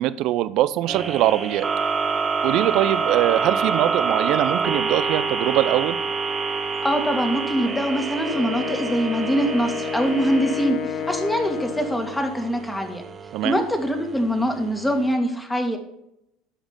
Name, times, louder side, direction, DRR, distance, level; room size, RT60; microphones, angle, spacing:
voice 1, 0.0-1.7 2.4-6.0 13.3-13.6, right 14 dB, 60° right, 15 dB, 0.5 m, -22 dB
sound 1, 0.9-15.1, right 5 dB, 30° right, 1.3 m, -27 dB
voice 2, 6.8-13.0 13.4-15.8, equal, 10° left, 5 dB, 2.0 m, -23 dB
Wind instrument woodwind instrument, 8.2-12.3, left 7 dB, 50° left, 0.7 m, -30 dB
12.5 x 5.1 x 5.4 m, 0.82 s
hypercardioid pair, 70°, 0 cm